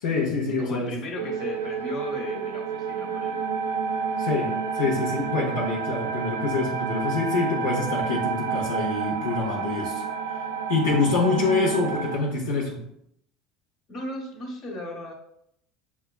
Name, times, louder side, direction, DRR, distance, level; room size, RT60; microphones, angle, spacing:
voice 1, 0.0-0.9 4.2-10.1 10.7-12.8, left 4 dB, 75° left, -3 dB, 0.7 m, -26 dB
voice 2, 0.6-3.4 13.9-15.1, left 1 dB, 50° left, 0 dB, 1.0 m, -35 dB
sound 1, 1.2-12.2, right 6 dB, 80° right, 0.3 m, -30 dB
6.1 x 2.3 x 2.3 m, 0.75 s
hypercardioid pair, 75°, 0 cm